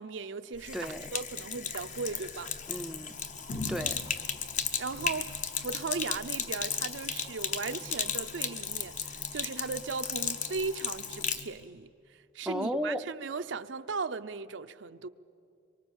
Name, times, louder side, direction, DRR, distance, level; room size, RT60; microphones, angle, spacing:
voice 1, 0.0-0.8 1.1-2.5 4.8-15.1, right 4 dB, 70° right, 0.6 m, -37 dB
Sink (filling or washing), 0.5-11.5, left 6 dB, 40° left, 0.9 m, -35 dB
voice 2, 0.7-1.1 2.7-3.1 3.7-4.0 12.5-13.0, equal, 5° right, 0.5 m, -34 dB
24.5 x 23.5 x 7.3 m
head